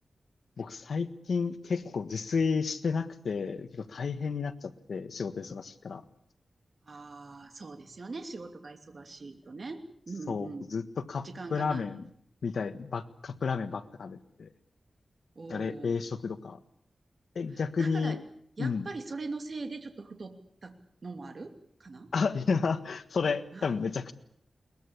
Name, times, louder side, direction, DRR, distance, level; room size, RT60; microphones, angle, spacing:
voice 1, 0.6-6.0 10.3-10.8 11.1-12.0 12.4-14.5 15.5-16.6 17.3-18.2 18.6-18.9 22.1-24.1, left 5 dB, 75° left, 11 dB, 1.5 m, -31 dB
voice 2, 6.8-10.7 11.2-11.9 15.3-16.0 17.5-18.2 18.6-20.4 20.6-20.7 21.0-22.1 23.5-23.8, right 3 dB, 45° right, 6 dB, 2.8 m, -41 dB
22.0 x 20.5 x 8.5 m, 0.68 s
wide cardioid pair, 115°, 0 cm